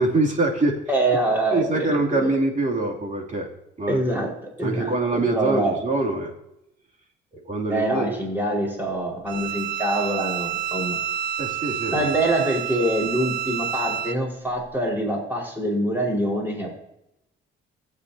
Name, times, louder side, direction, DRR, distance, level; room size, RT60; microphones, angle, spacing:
voice 1, 0.0-0.8 1.5-3.5 3.8-4.0 4.6-6.3 7.4-8.2 11.4-12.1, right 2 dB, 40° right, -1 dB, 3.0 m, -24 dB
voice 2, 0.9-2.3 3.9-4.3 4.6-5.7 7.7-11.0 11.9-16.8, right 1 dB, 10° right, -2 dB, 5.0 m, -25 dB
Bowed string instrument, 9.3-14.2, right 9 dB, 65° right, 0.7 m, -29 dB
19.0 x 8.4 x 2.9 m, 0.85 s
cardioid pair, 90°, 20 cm